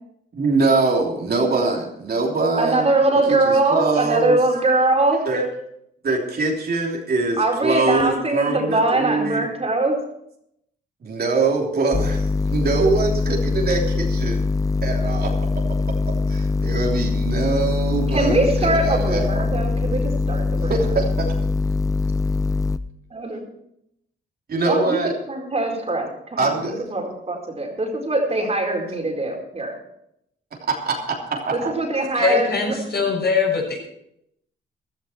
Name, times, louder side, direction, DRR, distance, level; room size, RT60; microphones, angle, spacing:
voice 1, 0.3-2.8 3.3-4.6 5.2-5.5 6.0-9.5 11.0-14.4 14.8-15.7 16.1-19.5 20.7-21.3 24.5-25.1 26.4-26.8 30.9-31.0 31.3-31.7, right 3 dB, 50° right, 3.3 m, -23 dB
voice 2, 2.6-5.3 7.4-10.0 18.1-20.8 23.1-23.4 24.7-25.0 25.3-26.6 26.9-29.8 31.5-32.7, right 2 dB, 30° right, 4.4 m, -22 dB
sound 1, 11.9-22.8, left 3 dB, 15° left, 0.6 m, -22 dB
voice 3, 32.1-33.8, left 5 dB, 55° left, 6.8 m, -21 dB
15.0 x 13.0 x 4.5 m
cardioid pair, 85°, 20 cm